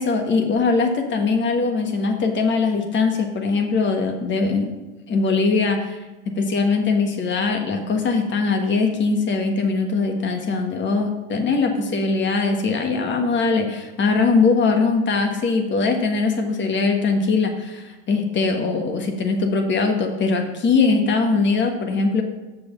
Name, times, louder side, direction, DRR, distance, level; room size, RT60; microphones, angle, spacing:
voice 1, 0.0-4.7 5.1-6.0 6.3-22.2, left 4 dB, 35° left, 5 dB, 1.5 m, -21 dB
6.9 x 6.2 x 5.7 m, 1.1 s
supercardioid pair, 100°, 33 cm